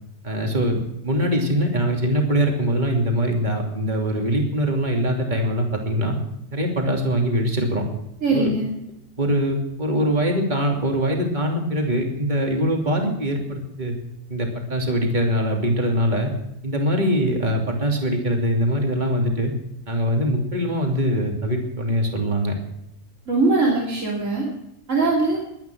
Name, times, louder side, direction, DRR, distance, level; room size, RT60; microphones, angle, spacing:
voice 1, 0.2-6.1 6.5-7.8 8.3-8.5 9.2-14.0 14.3-16.3 16.6-19.5 19.9-22.5, equal, 35° right, 1 dB, 3.0 m, -22 dB
voice 2, 8.2-8.7 23.3-24.5 24.9-25.4, right 3 dB, 70° right, -3 dB, 3.4 m, -21 dB
23.0 x 9.6 x 6.2 m, 0.84 s
omnidirectional pair, 1.4 m